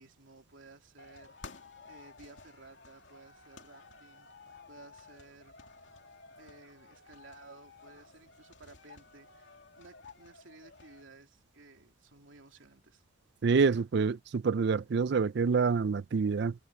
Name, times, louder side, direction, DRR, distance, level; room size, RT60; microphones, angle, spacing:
voice 1, 0.0-1.4 1.8-4.3 4.7-5.6 6.4-13.0, right 3 dB, 90° right, 3.3 m, -56 dB
sound 1, 1.0-11.0, left 4 dB, 70° left, 2.7 m, -54 dB
voice 2, 13.4-16.5, right 5 dB, 60° right, 0.4 m, -27 dB
head